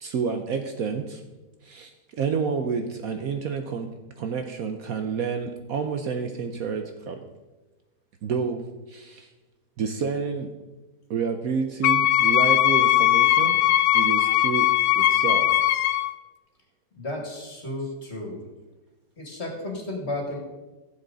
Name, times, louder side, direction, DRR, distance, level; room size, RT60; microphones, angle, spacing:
voice 1, 0.0-1.2 1.6-3.9 4.2-7.2 8.2-8.6 8.9-9.3 9.8-10.5 11.1-13.6 13.9-14.7 15.0-15.7, right 6 dB, 65° right, 6 dB, 1.1 m, -29 dB
Wind instrument woodwind instrument, 11.8-16.1, left 13 dB, 90° left, 1.2 m, -20 dB
voice 2, 16.9-18.4 19.2-20.4, left 1 dB, 40° left, 0 dB, 2.4 m, -33 dB
15.0 x 7.4 x 4.0 m, 1.1 s
omnidirectional pair, 1.8 m